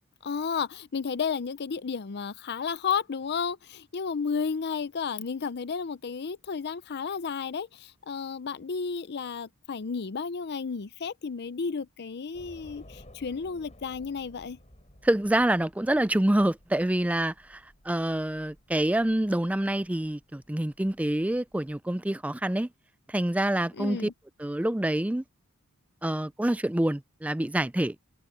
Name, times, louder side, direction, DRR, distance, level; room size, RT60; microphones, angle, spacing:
voice 1, 0.2-14.6 23.7-24.1, left 6 dB, 50° left, 0.5 m, -32 dB
Train / Subway metro underground, 12.3-21.8, left 1 dB, 30° left, 6.9 m, -55 dB
voice 2, 15.0-17.6 17.9-22.7 23.1-24.1 24.4-25.2 26.0-28.0, right 1 dB, 5° right, 0.4 m, -26 dB
head